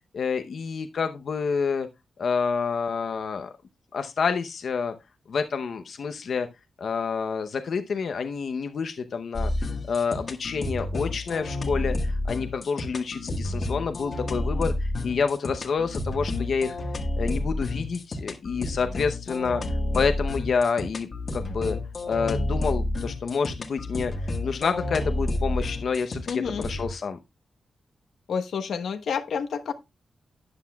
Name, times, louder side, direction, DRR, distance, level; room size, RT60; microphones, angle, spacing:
voice 1, 0.1-1.9 2.2-3.5 3.9-4.9 5.3-6.5 6.8-9.5 9.9-16.8 17.2-19.6 19.9-21.8 22.1-24.1 24.4-27.2, left 5 dB, 60° left, 0.7 m, -28 dB
sound 1, 9.3-26.9, left 1 dB, 40° left, 1.4 m, -30 dB
voice 2, 26.3-26.7 28.3-29.7, left 6 dB, 85° left, 1.0 m, -29 dB
13.0 x 9.8 x 2.3 m
wide cardioid pair, 150°, 0 cm